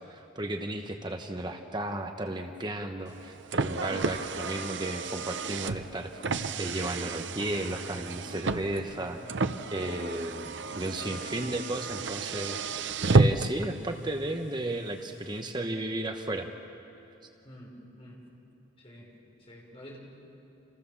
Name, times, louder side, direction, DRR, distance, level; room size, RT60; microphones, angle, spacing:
voice 1, 0.0-6.2 6.6-9.2 9.7-12.6 13.1-16.5, right 1 dB, 20° right, 5 dB, 1.1 m, -34 dB
Car, 3.1-13.7, right 3 dB, 60° right, 0.7 m, -31 dB
voice 2, 8.9-9.2 17.4-18.2 18.8-19.1 19.4-20.0, equal, 30° left, -2 dB, 5.8 m, -49 dB
29.5 x 28.0 x 7.2 m, 2.9 s
head